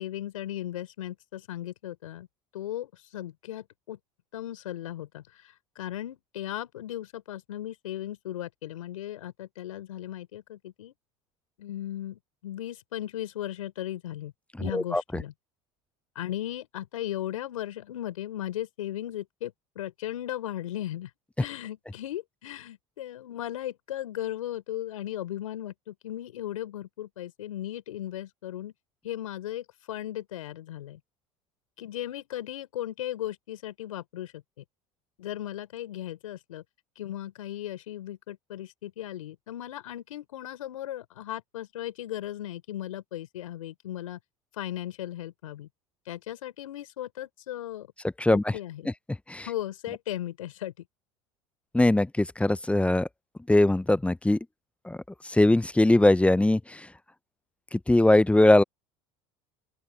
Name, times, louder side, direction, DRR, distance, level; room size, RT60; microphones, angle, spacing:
voice 1, 0.0-2.3 2.5-4.0 4.3-10.9 11.6-14.3 14.6-15.3 16.1-21.1 21.4-28.7 29.0-31.0 31.8-34.6 35.2-36.6 37.0-44.2 44.5-45.7 46.0-47.9 48.3-48.9 49.5-50.8, left 12 dB, 80° left, 4.7 m, -37 dB
voice 2, 14.6-15.2 48.2-48.4 49.3-49.5 51.7-53.1 53.5-54.4 54.8-55.0 55.2-56.9 57.7-58.6, left 1 dB, 5° left, 0.7 m, -21 dB
open air
hypercardioid pair, 70°, 17 cm